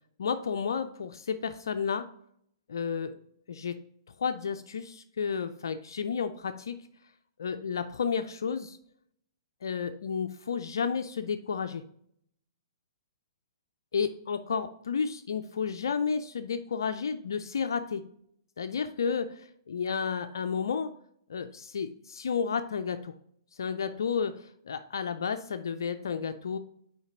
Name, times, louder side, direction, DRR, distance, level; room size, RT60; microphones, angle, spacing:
voice 1, 0.2-2.1 2.7-3.2 3.5-3.8 4.2-6.9 7.4-8.8 9.6-11.8 13.9-18.0 18.6-20.9 21.3-23.1 23.6-26.6, left 6 dB, 65° left, 9 dB, 0.4 m, -32 dB
7.9 x 5.1 x 3.8 m, 0.69 s
figure-of-eight pair, 115°, 2 cm